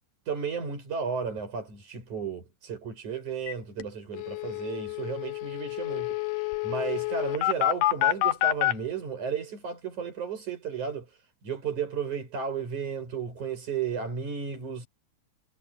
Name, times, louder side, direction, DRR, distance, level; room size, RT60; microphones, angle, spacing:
voice 1, 0.3-11.1 11.4-14.9, right 6 dB, 70° right, 8.9 m, -33 dB
sound 1, 3.5-3.6 3.8-3.9 4.1-8.7, left 15 dB, 90° left, 2.5 m, -28 dB
omnidirectional pair, 3.5 m